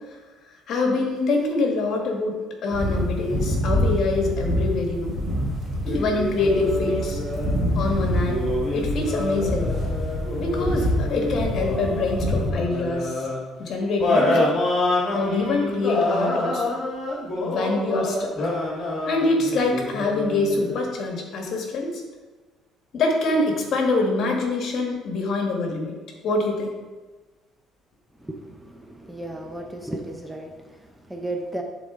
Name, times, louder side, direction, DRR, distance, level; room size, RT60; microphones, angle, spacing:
voice 1, 0.7-5.1 5.8-7.2 7.7-8.4 8.7-9.7 10.4-13.3 13.6-14.5 15.1-16.6 17.4-18.3 19.0-21.9 22.9-26.0 26.2-26.7, left 3 dB, 55° left, 1 dB, 1.6 m, -25 dB
sound 1, 2.7-12.5, equal, 20° right, 2.5 m, -26 dB
sound 2, 5.8-7.6 8.2-13.4 14.0-20.8, left 1 dB, 35° left, 2.3 m, -27 dB
voice 2, 28.2-31.6, right 1 dB, 5° right, 3 dB, 0.6 m, -34 dB
11.0 x 4.0 x 3.7 m, 1.2 s
cardioid pair, 130°, 0 cm